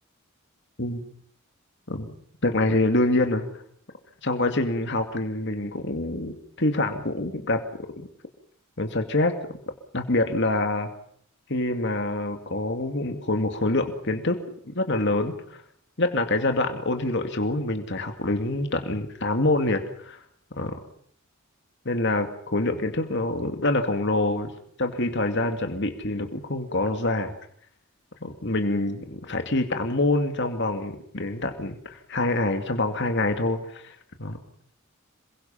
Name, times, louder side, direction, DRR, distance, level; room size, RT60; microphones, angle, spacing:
voice 1, 2.4-3.4 4.2-7.6 8.0-8.1 8.8-9.4 9.9-10.9 11.5-15.6 16.0-20.2 20.5-20.8 21.9-24.5 24.8-27.3 28.2-34.4, left 2 dB, 55° left, 5 dB, 2.3 m, -26 dB
27.5 x 22.5 x 5.8 m, 0.65 s
head